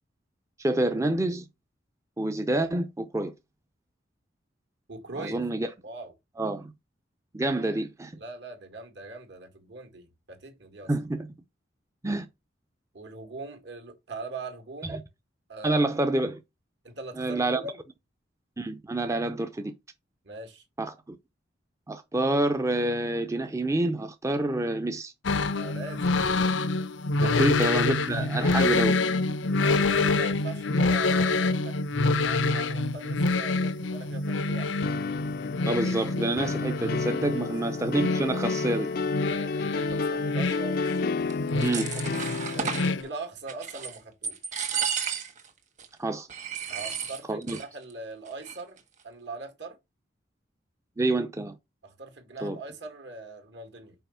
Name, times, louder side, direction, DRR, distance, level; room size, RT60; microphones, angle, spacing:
voice 1, 0.6-1.4 2.2-3.3 5.2-5.7 6.4-6.7 7.3-8.1 10.9-11.3 12.0-12.3 14.9-15.0 15.6-16.4 17.2-17.6 18.6-19.7 20.8-21.2 21.9-25.1 27.2-29.0 35.6-38.9 41.6-41.8 46.0-46.3 47.3-47.6 51.0-51.5 52.4-52.6, right 2 dB, 15° right, 0.6 m, -27 dB
voice 2, 4.9-5.4 5.8-6.1 8.1-10.9 12.9-15.0 15.5-15.9 16.8-17.8 20.2-20.6 25.5-26.1 27.2-27.4 29.6-31.8 32.2-34.7 37.3-37.4 39.2-40.9 41.5-44.6 46.7-49.8 51.8-54.0, right 3 dB, 65° right, 2.1 m, -41 dB
sound 1, 25.2-43.0, left 3 dB, 85° left, 0.7 m, -27 dB
sound 2, 34.8-43.1, left 4 dB, 55° left, 0.4 m, -31 dB
sound 3, 41.3-42.9 43.5-44.0 44.2-45.5 45.8-45.9 46.3-47.6 47.9-48.0 48.3-48.8, right 7 dB, 40° right, 1.5 m, -33 dB
5.6 x 4.9 x 5.7 m
head